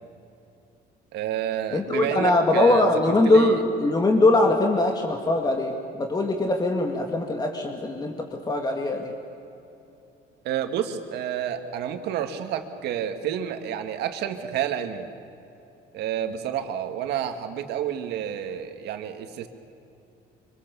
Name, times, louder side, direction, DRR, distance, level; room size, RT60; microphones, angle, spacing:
voice 1, 1.1-2.9 3.2-3.6 10.4-15.1 15.9-19.5, right 9 dB, 80° right, 6 dB, 2.1 m, -29 dB
voice 2, 1.7-9.1, left 2 dB, 25° left, 2 dB, 2.1 m, -22 dB
25.5 x 25.0 x 7.1 m, 2.9 s
cardioid pair, 110°, 17 cm